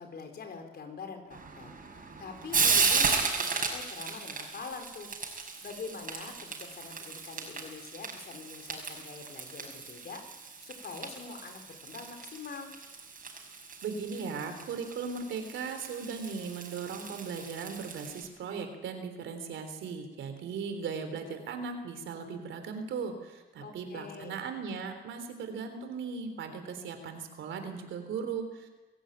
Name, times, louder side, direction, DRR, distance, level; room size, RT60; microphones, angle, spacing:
voice 1, 0.0-5.1 5.6-10.2 10.6-12.7 23.6-24.4, left 5 dB, 55° left, 6 dB, 4.5 m, -44 dB
Frying (food), 1.3-18.3, right 5 dB, 45° right, 5.8 m, -35 dB
voice 2, 13.8-28.7, right 5 dB, 90° right, 7 dB, 3.6 m, -38 dB
24.5 x 15.0 x 9.1 m, 1.2 s
cardioid pair, 110°, 19 cm